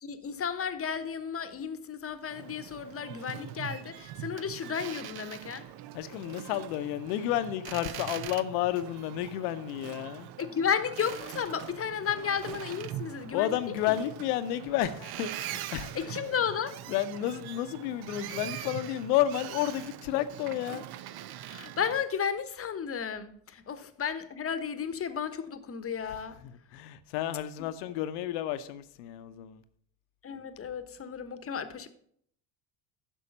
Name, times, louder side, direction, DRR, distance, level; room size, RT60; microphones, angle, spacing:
voice 1, 0.0-5.7 10.4-14.0 15.9-16.8 21.5-26.4 30.2-31.9, left 7 dB, 30° left, 1.0 m, -33 dB
Boat Water vehicle, 2.3-22.1, right 12 dB, 50° right, 0.6 m, -42 dB
voice 2, 5.9-10.3 13.3-16.2 16.9-20.8 26.1-29.6, left 12 dB, 70° left, 0.9 m, -31 dB
10.0 x 6.3 x 5.3 m
hypercardioid pair, 75°, 50 cm